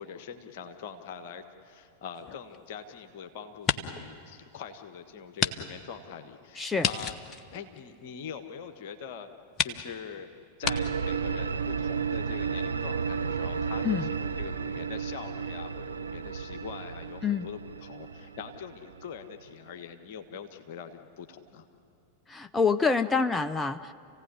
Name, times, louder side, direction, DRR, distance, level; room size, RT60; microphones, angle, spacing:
voice 1, 0.0-7.2 7.5-9.3 9.6-10.3 10.6-21.7, left 7 dB, 50° left, 7 dB, 1.5 m, -43 dB
sound 1, 2.2-3.1 3.5-4.1 4.5-4.6 5.4-5.6 5.8-5.9 6.8-8.4 9.0-9.1 9.5-9.8 10.6-10.8, left 6 dB, 30° left, 1.2 m, -31 dB
voice 2, 6.6-6.9 13.8-14.1 17.2-17.5 22.3-23.9, left 5 dB, 10° left, 10 dB, 0.6 m, -26 dB
sound 2, 10.6-19.5, right 6 dB, 75° right, 0.7 m, -33 dB
29.0 x 16.5 x 9.9 m, 2.6 s
figure-of-eight pair, 90°, 0 cm